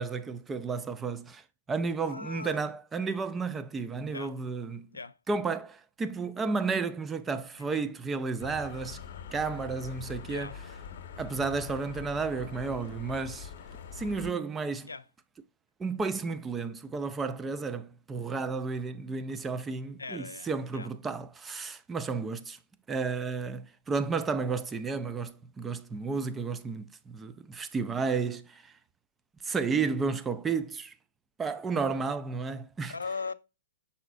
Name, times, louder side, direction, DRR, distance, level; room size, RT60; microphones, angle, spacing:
voice 1, 0.0-4.9 5.3-9.0 9.3-10.5 11.2-13.5 13.9-14.9 15.8-22.6 22.9-28.7 29.4-30.9 31.4-32.9, right 4 dB, 15° right, 0.4 m, -32 dB
voice 2, 2.0-2.6 4.1-4.3 4.9-5.2 7.6-7.9 10.2-10.6 14.8-15.0 20.0-20.9 32.9-33.3, left 4 dB, 90° left, 0.3 m, -39 dB
sound 1, 8.4-14.3, left 7 dB, 60° left, 1.0 m, -43 dB
5.5 x 3.9 x 2.3 m
hypercardioid pair, 120°, 0 cm